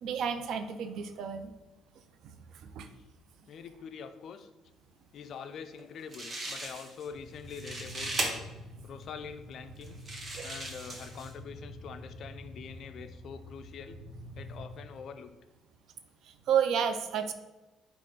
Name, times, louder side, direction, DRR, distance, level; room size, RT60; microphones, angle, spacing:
voice 1, 0.0-1.5 2.7-2.9 10.4-10.5 16.5-17.3, right 8 dB, 65° right, 9 dB, 0.4 m, -30 dB
voice 2, 3.5-4.5 5.1-8.5 8.8-10.0 10.4-14.0 14.3-15.4, left 6 dB, 55° left, 9 dB, 0.4 m, -44 dB
sound 1, 5.8-5.9 6.1-7.1 7.4-8.3 9.0-9.1 9.8-11.3, right 2 dB, 30° right, 0.9 m, -37 dB
sound 2, 7.0-15.0, left 1 dB, 15° left, 1.1 m, -47 dB
4.0 x 2.4 x 4.5 m, 1.1 s
cardioid pair, 115°, 0 cm